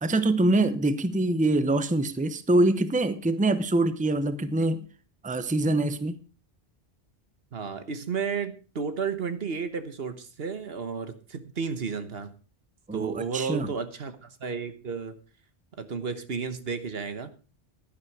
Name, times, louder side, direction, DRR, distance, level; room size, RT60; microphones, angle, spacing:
voice 1, 0.0-4.8 5.2-6.2 12.9-13.7, right 2 dB, 10° right, 12 dB, 0.7 m, -24 dB
voice 2, 7.5-12.3 12.9-15.2 15.7-17.3, right 5 dB, 70° right, 10 dB, 1.4 m, -32 dB
11.5 x 10.5 x 4.8 m, 0.35 s
omnidirectional pair, 1.0 m